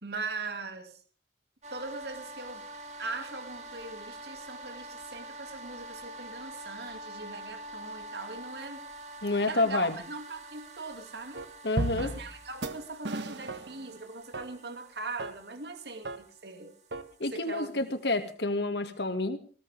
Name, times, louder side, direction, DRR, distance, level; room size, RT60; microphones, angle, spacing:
voice 1, 0.0-1.0 1.7-2.6 3.0-8.8 9.5-11.4 12.0-16.8 17.3-17.8, right 3 dB, 65° right, 7 dB, 2.5 m, -40 dB
sound 1, 1.6-18.3, right 1 dB, 40° right, 2.3 m, -46 dB
voice 2, 9.2-10.0 11.6-12.1 17.2-19.4, left 2 dB, 70° left, 8 dB, 2.3 m, -29 dB
sound 2, 11.3-11.4 11.8-12.4 12.6-12.7 13.0-13.9 14.3-14.4 15.2-15.3 16.0-16.2 16.9-17.0, right 1 dB, 85° right, 1.6 m, -34 dB
20.0 x 17.0 x 3.6 m, 0.39 s
head